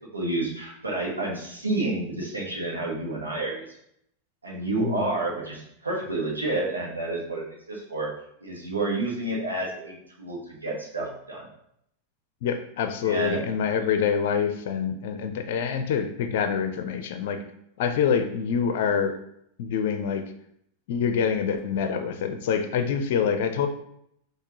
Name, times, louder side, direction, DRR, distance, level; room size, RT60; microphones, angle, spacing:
voice 1, 0.1-3.6 4.4-8.1 8.4-11.4 13.0-13.4, right 2 dB, 80° right, -4 dB, 1.3 m, -29 dB
voice 2, 12.4-17.4 17.8-19.1 19.6-20.2 20.9-23.7, left 7 dB, 55° left, 8 dB, 0.5 m, -26 dB
5.8 x 2.8 x 2.9 m, 0.72 s
figure-of-eight pair, 90°, 0 cm